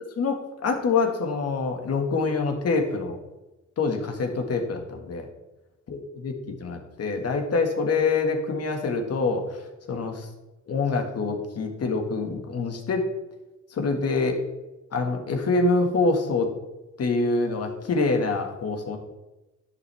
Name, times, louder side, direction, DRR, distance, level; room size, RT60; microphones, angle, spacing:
voice 1, 0.2-3.2 3.8-5.3 5.9-6.3 6.6-9.6 9.9-10.3 10.7-13.1 13.7-14.4 14.9-16.5 17.0-19.0, left 3 dB, 55° left, 4 dB, 1.9 m, -25 dB
10.5 x 8.5 x 3.5 m, 1.0 s
cardioid pair, 90°, 30 cm